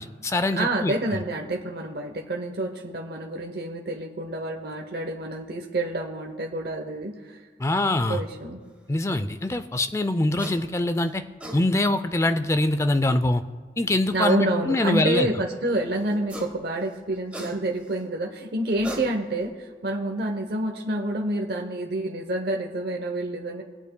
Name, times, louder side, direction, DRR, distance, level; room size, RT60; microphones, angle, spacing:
voice 1, 0.0-0.9 7.6-8.2 8.9-11.2 11.5-13.4 13.8-15.3, left 2 dB, 15° left, 10 dB, 0.4 m, -24 dB
voice 2, 0.6-7.4 8.1-8.6 14.1-23.6, right 1 dB, 65° right, 1 dB, 0.8 m, -28 dB
sound 1, 10.4-10.6 11.2-11.6 13.0-13.1 16.1-16.6 16.9-17.9 18.6-19.5, right 1 dB, 10° right, 1.1 m, -38 dB
21.5 x 8.2 x 2.2 m, 1.5 s
head